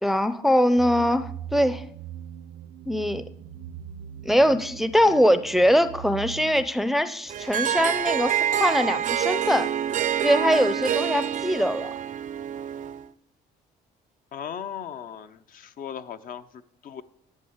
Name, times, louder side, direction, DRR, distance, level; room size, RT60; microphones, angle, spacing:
voice 1, 0.0-1.8 2.9-3.2 4.2-9.7 10.2-11.9, equal, ahead, 12 dB, 0.6 m, -22 dB
sound 1, 0.8-6.6, right 8 dB, 90° right, 0.9 m, -40 dB
Harp, 7.3-13.1, right 9 dB, 50° right, 0.6 m, -27 dB
voice 2, 14.3-17.0, left 8 dB, 55° left, 11 dB, 0.8 m, -37 dB
11.0 x 7.7 x 8.1 m, 0.71 s
cardioid pair, 110°, 17 cm